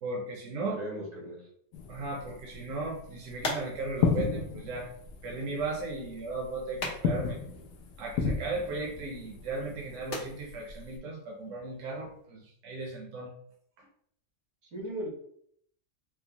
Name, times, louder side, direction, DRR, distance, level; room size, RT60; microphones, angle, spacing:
voice 1, 0.0-0.8 1.9-4.9 5.2-7.4 8.0-13.3, right 3 dB, 75° right, -1 dB, 1.0 m, -36 dB
voice 2, 0.7-1.5 14.7-15.1, right 1 dB, 90° right, -2 dB, 1.6 m, -37 dB
sound 1, 1.7-11.0, left 6 dB, 90° left, 1.0 m, -35 dB
sound 2, 2.5-12.3, left 2 dB, 70° left, 1.2 m, -44 dB
4.4 x 2.0 x 2.8 m, 0.66 s
omnidirectional pair, 1.3 m